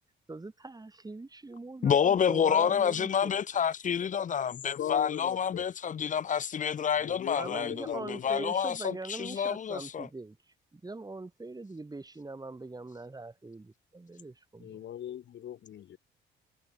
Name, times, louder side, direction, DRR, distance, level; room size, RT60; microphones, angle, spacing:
voice 1, 0.3-3.3 7.3-10.4 10.7-14.8, right 3 dB, 20° right, 6.6 m, -42 dB
voice 2, 1.8-10.1, left 8 dB, 40° left, 0.7 m, -28 dB
voice 3, 4.8-5.7 7.0-8.3 14.6-16.0, left 10 dB, 65° left, 1.9 m, -39 dB
cardioid pair, 90°, 20 cm